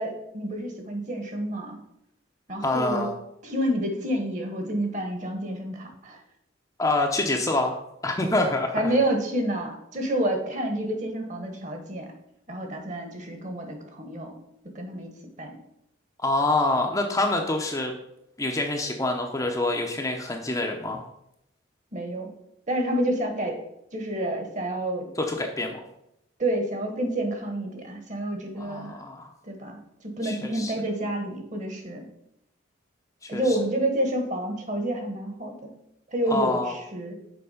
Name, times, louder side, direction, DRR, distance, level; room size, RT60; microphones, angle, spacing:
voice 1, 0.0-1.8 2.5-3.1 3.4-6.2 8.7-12.1 12.5-14.3 14.7-15.1 15.4-15.6 21.9-22.3 22.7-23.5 23.9-25.1 26.4-29.0 29.4-32.1 33.3-35.7 36.1-37.2, right 1 dB, 35° right, 4 dB, 1.2 m, -29 dB
voice 2, 2.6-3.1 6.8-8.9 16.2-17.9 18.4-21.0 25.2-25.8 28.6-29.3 30.2-30.7 33.2-33.6 36.3-36.7, left 2 dB, 15° left, 2 dB, 0.6 m, -26 dB
6.9 x 4.7 x 4.9 m, 0.80 s
head